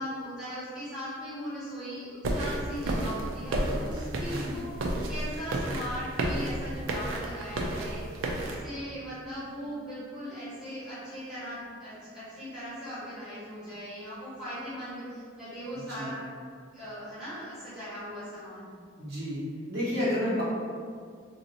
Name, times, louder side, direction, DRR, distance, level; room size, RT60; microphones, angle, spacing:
voice 1, 0.0-4.7 5.1-16.3 16.7-18.7, equal, 5° right, -15 dB, 1.5 m, -39 dB
sound 1, 2.2-8.6, right 1 dB, 85° right, 0.4 m, -32 dB
voice 2, 15.7-16.2 19.0-19.4 19.7-20.4, left 1 dB, 55° right, -10 dB, 1.1 m, -31 dB
3.1 x 2.7 x 2.7 m, 2.1 s
head